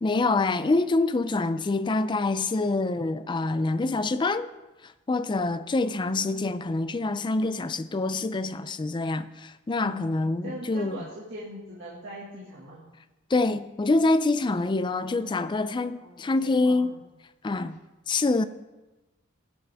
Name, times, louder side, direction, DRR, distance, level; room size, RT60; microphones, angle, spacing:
voice 1, 0.0-4.5 5.1-11.0 13.3-16.9 17.4-17.8 18.1-18.4, left 3 dB, 25° left, 0.4 m, -26 dB
voice 2, 5.8-6.1 9.8-12.8 14.9-15.5 16.0-17.0, equal, 60° right, 1.9 m, -42 dB
17.0 x 7.6 x 3.5 m
head